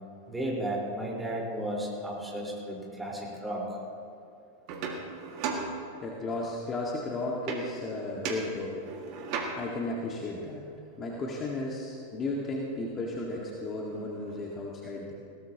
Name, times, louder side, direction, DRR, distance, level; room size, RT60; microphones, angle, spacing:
voice 1, 0.3-3.6, right 1 dB, 5° right, -4 dB, 4.3 m, -34 dB
sound 1, 4.7-6.3 7.5-7.9 8.2-9.9 13.1-13.2 13.5-14.6, right 4 dB, 45° right, 1.9 m, -37 dB
voice 2, 6.0-8.8 9.6-10.6 11.0-15.1, left 2 dB, 25° left, -2 dB, 1.9 m, -34 dB
20.0 x 17.5 x 2.9 m, 2.5 s
figure-of-eight pair, 90°, 0 cm